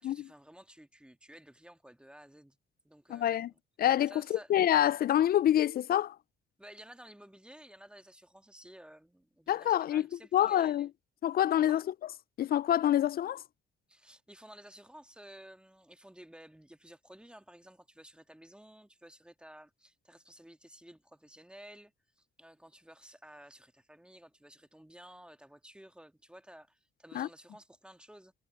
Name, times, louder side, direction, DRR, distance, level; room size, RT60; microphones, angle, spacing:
voice 1, 0.0-2.6 2.8-3.6 4.1-4.5 6.6-10.9 11.5-11.8 13.9-28.3, right 1 dB, 5° right, 1.6 m, -54 dB
voice 2, 3.1-3.5 3.8-6.2 9.5-10.0 10.3-10.9 11.2-11.8 12.4-13.4 27.1-27.3, left 11 dB, 50° left, 0.4 m, -26 dB
cardioid pair, 90°, 20 cm